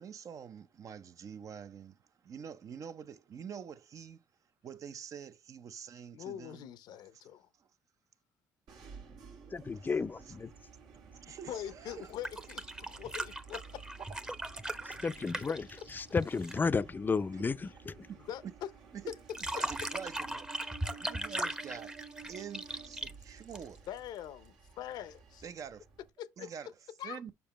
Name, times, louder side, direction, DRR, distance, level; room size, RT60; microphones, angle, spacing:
voice 1, 0.0-4.2 4.6-6.7 7.6-7.7 9.7-10.4 10.9-12.1 17.3-17.4 18.0-18.2 18.4-18.5 18.9-19.0 19.5-20.5 21.0-21.9 22.3-23.9 25.4-25.9 26.4-26.7 27.0-27.3, right 7 dB, 50° right, 0.6 m, -46 dB
voice 2, 6.1-7.5 11.3-13.9 18.2-18.7 19.1-19.2 23.9-25.4 26.2-26.7 27.0-27.2, left 10 dB, 70° left, 0.6 m, -43 dB
sound 1, 8.7-26.1, right 6 dB, 75° right, 1.7 m, -53 dB
voice 3, 9.5-10.5 15.0-18.0, left 4 dB, 25° left, 0.4 m, -33 dB
sound 2, 12.0-16.7 19.1-24.0 25.4-25.5, right 1 dB, 10° right, 0.7 m, -39 dB
6.8 x 5.0 x 3.0 m
supercardioid pair, 70°, 7 cm